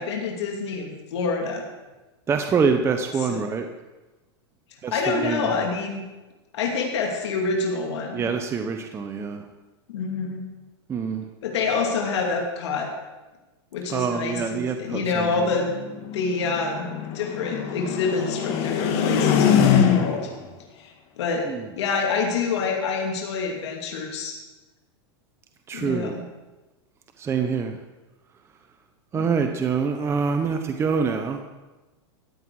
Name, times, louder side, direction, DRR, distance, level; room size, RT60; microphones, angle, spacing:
voice 1, 0.0-1.6 3.2-3.5 4.9-6.0 6.5-8.2 9.9-10.4 11.4-12.9 13.7-15.7 16.1-16.9 17.1-20.3 20.8-21.5 21.8-24.4 25.7-26.2 29.1-29.4, left 4 dB, 75° left, 0 dB, 2.6 m, -27 dB
voice 2, 2.3-3.7 4.8-5.0 5.2-5.6 8.1-9.4 10.9-11.3 13.9-15.5 21.5-21.6 25.7-26.2 27.2-27.8 29.1-31.4, right 5 dB, 20° right, 5 dB, 0.8 m, -25 dB
sound 1, 14.9-20.4, left 8 dB, 45° left, 1.6 m, -23 dB
14.5 x 9.1 x 4.8 m, 1.1 s
supercardioid pair, 135°, 14 cm